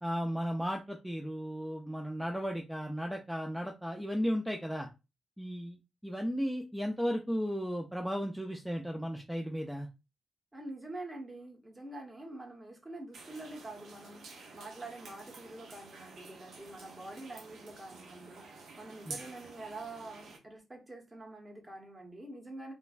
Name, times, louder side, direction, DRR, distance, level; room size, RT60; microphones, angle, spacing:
voice 1, 0.0-4.9 5.4-9.9 19.1-19.2, equal, 5° right, 0.5 m, -35 dB
voice 2, 10.5-22.7, right 2 dB, 25° right, 1.1 m, -46 dB
sound 1, 13.1-20.4, right 3 dB, 75° right, 0.6 m, -50 dB
3.1 x 2.1 x 2.4 m
supercardioid pair, 45°, 0 cm